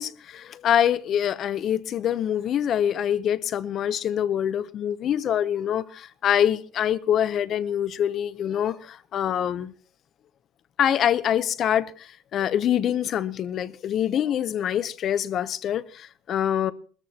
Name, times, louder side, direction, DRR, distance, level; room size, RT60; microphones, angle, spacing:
voice 1, 0.0-9.7 10.8-16.7, left 10 dB, 40° left, 0.7 m, -25 dB
21.0 x 14.0 x 2.9 m
cardioid pair, 160°, 0 cm